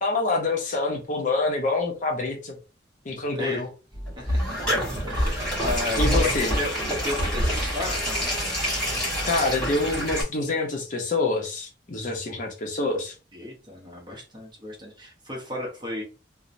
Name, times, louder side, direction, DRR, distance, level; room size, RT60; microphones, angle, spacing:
voice 1, 0.0-2.6 3.0-3.7 6.0-6.5 9.2-13.1, left 3 dB, 45° left, 1 dB, 0.6 m, -26 dB
voice 2, 3.3-3.6 4.2-4.8 5.1-8.2 12.3-12.4 13.3-16.0, left 1 dB, 25° right, -1 dB, 0.8 m, -34 dB
sound 1, 3.9-10.2, equal, 5° left, 1.4 m, -26 dB
3.0 x 2.0 x 2.5 m, 0.33 s
head